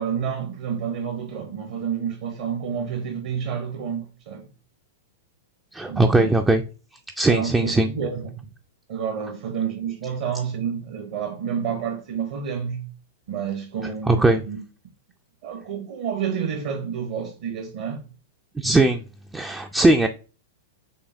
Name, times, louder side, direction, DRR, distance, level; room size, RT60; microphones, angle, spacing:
voice 1, 0.0-4.5 5.9-6.3 7.3-8.5 8.9-12.9 13.3-14.6 15.4-18.1, right 7 dB, 50° right, 0.8 m, -29 dB
voice 2, 5.7-6.6 7.2-7.9 14.1-14.4 18.6-19.0 19.3-20.1, right 2 dB, 10° right, 0.3 m, -19 dB
5.8 x 3.3 x 2.5 m
figure-of-eight pair, 100°, 0 cm